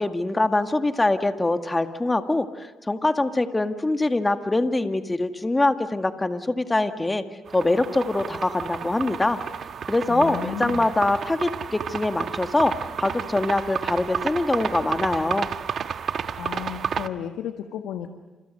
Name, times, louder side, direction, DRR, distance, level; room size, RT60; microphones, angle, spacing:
voice 1, 0.0-7.2 7.5-9.4 9.9-12.7 13.0-15.5, left 2 dB, 15° left, 7 dB, 2.0 m, -23 dB
sound 1, 7.5-17.1, right 7 dB, 60° right, 1.2 m, -31 dB
voice 2, 10.1-10.9 16.4-18.1, left 9 dB, 80° left, 6 dB, 1.6 m, -33 dB
29.5 x 28.0 x 6.6 m, 1.2 s
cardioid pair, 90°, 0 cm